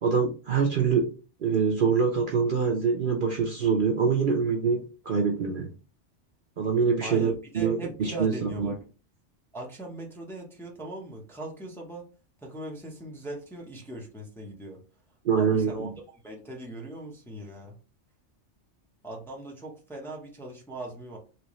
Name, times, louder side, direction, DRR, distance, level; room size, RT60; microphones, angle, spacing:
voice 1, 0.0-1.1 1.4-5.7 6.6-8.7 15.2-15.9, right 5 dB, 55° right, 1 dB, 0.7 m, -25 dB
voice 2, 7.0-8.8 9.5-12.0 12.4-14.8 15.4-15.9 16.2-17.7 19.0-21.2, right 1 dB, ahead, -1 dB, 0.6 m, -39 dB
3.4 x 2.8 x 3.0 m, 0.34 s
omnidirectional pair, 1.2 m